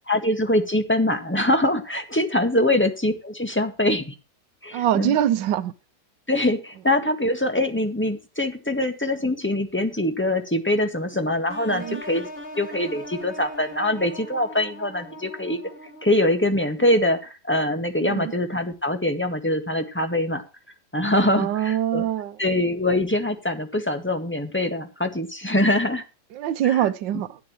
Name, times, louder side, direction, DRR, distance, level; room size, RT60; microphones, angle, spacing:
voice 1, 0.1-4.1 4.6-5.2 6.3-12.3 12.6-15.6 16.0-20.4 20.9-22.0 22.4-26.0 26.6-26.9, left 1 dB, 5° left, 1.7 m, -23 dB
voice 2, 4.7-5.7 11.7-12.0 18.0-18.3 21.2-22.4 26.3-27.4, right 11 dB, 90° right, 1.4 m, -24 dB
sound 1, 11.5-16.3, left 1 dB, 35° left, 2.0 m, -39 dB
14.5 x 10.5 x 3.1 m
omnidirectional pair, 1.9 m